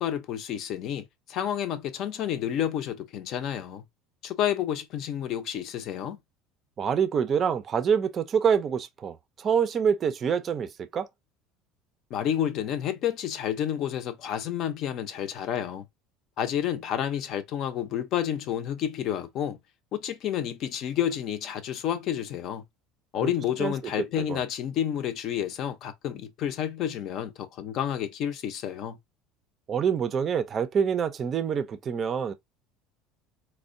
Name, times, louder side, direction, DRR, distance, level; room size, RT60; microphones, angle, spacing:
voice 1, 0.0-3.8 4.2-6.2 12.1-15.8 16.4-19.6 19.9-22.6 23.1-29.0, left 10 dB, 50° left, 0.6 m, -30 dB
voice 2, 6.8-11.1 23.2-23.3 23.6-24.4 29.7-32.3, right 7 dB, 35° right, 0.4 m, -26 dB
4.2 x 2.1 x 2.5 m
cardioid pair, 130°, 0 cm